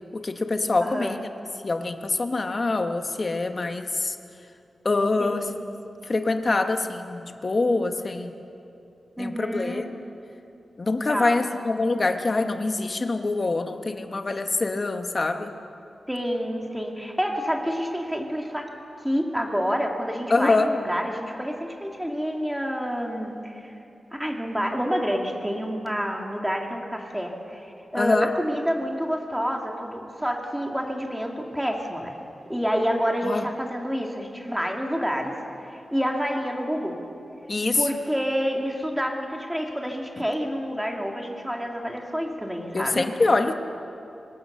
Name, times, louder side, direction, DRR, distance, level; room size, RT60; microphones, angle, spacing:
voice 1, 0.1-1.2 1.6-4.2 4.8-5.5 6.0-8.3 9.2-10.0 10.8-15.5 20.3-20.7 27.9-28.3 33.2-33.4 37.5-37.9 42.7-43.5, left 3 dB, 35° left, 6 dB, 1.2 m, -25 dB
voice 2, 0.8-1.2 5.2-5.6 9.2-9.9 11.1-11.4 16.1-18.7 19.0-23.7 24.1-32.1 32.5-35.3 35.7-36.9 37.8-43.1, equal, 5° right, 1 dB, 2.3 m, -28 dB
25.0 x 20.0 x 6.6 m, 2.7 s
wide cardioid pair, 155°, 0 cm